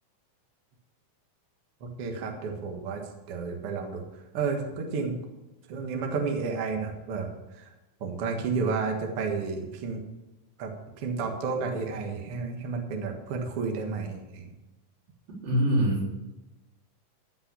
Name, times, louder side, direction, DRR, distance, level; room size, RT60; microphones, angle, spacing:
voice 1, 1.8-3.0 3.3-4.0 4.3-5.2 5.7-7.7 8.0-10.0 10.6-10.7 11.0-14.5, right 4 dB, 50° right, 3 dB, 2.1 m, -31 dB
voice 2, 15.4-16.1, right 1 dB, 85° right, -4 dB, 5.5 m, -24 dB
14.0 x 5.5 x 8.4 m, 1.0 s
omnidirectional pair, 4.0 m